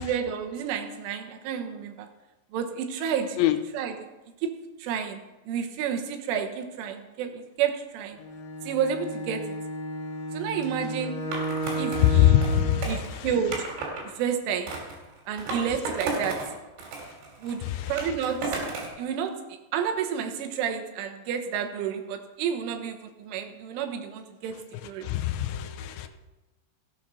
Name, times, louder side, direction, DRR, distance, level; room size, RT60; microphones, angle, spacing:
voice 1, 0.0-2.1 2.5-3.4 3.7-4.1 4.4-5.2 5.5-8.2 8.6-9.6 10.3-11.3 11.8-12.4 12.9-13.7 14.1-14.7 15.3-16.4 17.4-18.6 19.0-25.1, right 7 dB, 85° right, 3.7 m, -30 dB
Bowed string instrument, 8.2-12.9, right 2 dB, 60° left, 4.1 m, -33 dB
Skateboard, 11.3-14.0 14.7-16.5 16.8-19.0, right 3 dB, 65° right, 5.1 m, -34 dB
voice 2, 12.1-13.3 17.7-17.9 25.0-26.1, left 12 dB, 80° left, 3.1 m, -23 dB
15.0 x 8.8 x 6.2 m
omnidirectional pair, 5.5 m